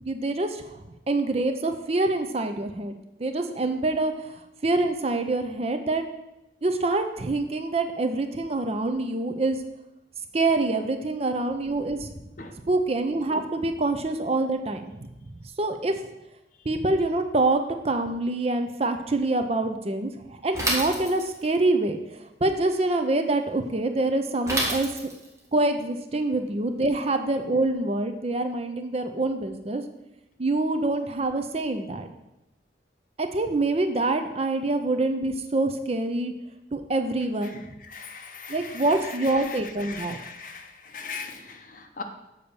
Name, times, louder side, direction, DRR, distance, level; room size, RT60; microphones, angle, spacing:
voice 1, 0.0-2.9 3.2-4.3 4.6-6.0 6.6-9.6 10.3-12.1 12.7-15.1 15.6-15.9 16.7-20.1 20.4-22.0 22.4-24.9 25.5-29.8 30.4-32.1 33.2-36.3 36.7-37.6 38.5-40.2, right 2 dB, 35° right, 7 dB, 0.6 m, -25 dB
Bicycle / Mechanisms, 20.5-21.5 24.5-25.4, right 1 dB, 15° right, 1.4 m, -28 dB
voice 2, 37.4-42.0, left 5 dB, 50° left, 5 dB, 0.8 m, -40 dB
7.0 x 4.1 x 6.7 m, 0.92 s
head